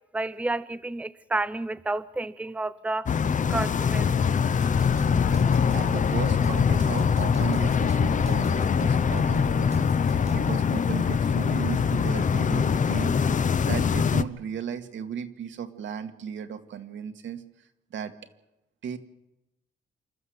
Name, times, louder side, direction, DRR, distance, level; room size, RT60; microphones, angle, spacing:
voice 1, 0.1-3.1 3.5-4.1, right 2 dB, 5° right, 14 dB, 0.7 m, -30 dB
sound 1, 3.1-14.2, left 6 dB, 40° left, 0.8 m, -23 dB
sound 2, 4.6-10.4, right 3 dB, 35° right, 1.3 m, -40 dB
sound 3, 5.1-12.5, left 8 dB, 70° left, 5.4 m, -41 dB
voice 2, 5.7-18.1 18.8-19.0, right 8 dB, 70° right, 7 dB, 1.9 m, -36 dB
28.0 x 13.0 x 7.9 m, 0.90 s
cardioid pair, 90°, 20 cm